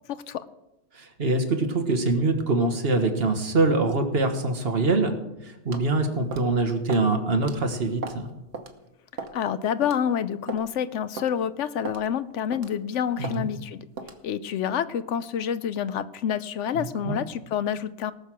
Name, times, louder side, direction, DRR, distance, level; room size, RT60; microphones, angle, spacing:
voice 1, 0.1-0.4 9.3-13.9 14.2-18.1, left 8 dB, 80° left, 14 dB, 1.0 m, -28 dB
voice 2, 0.9-5.1 5.4-8.3 13.2-13.5 16.7-17.2, right 3 dB, 55° right, 6 dB, 1.6 m, -24 dB
sound 1, 5.7-5.9 6.3-6.5 6.9-7.1 7.4-7.6 8.0-8.2 8.5-8.7 9.2-9.4 9.8-10.0 10.5-10.6 11.2-11.3 11.8-12.0 12.5-12.8 13.2-13.4 14.0-14.2, right 4 dB, 80° right, 1.4 m, -36 dB
18.5 x 6.5 x 6.1 m, 0.93 s
omnidirectional pair, 1.3 m